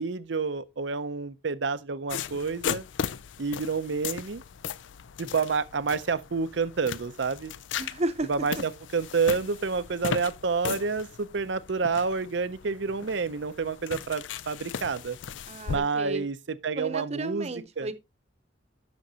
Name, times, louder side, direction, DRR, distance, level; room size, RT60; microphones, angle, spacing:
voice 1, 0.0-2.8 3.4-4.4 5.2-7.5 8.3-15.2 15.7-17.9, right 4 dB, 75° right, 0.6 m, -29 dB
sound 1, 2.1-15.8, left 7 dB, 90° left, 0.5 m, -37 dB
voice 2, 7.8-8.3 15.5-16.3 16.8-17.9, right 2 dB, 35° right, 0.8 m, -33 dB
10.5 x 6.4 x 2.8 m
head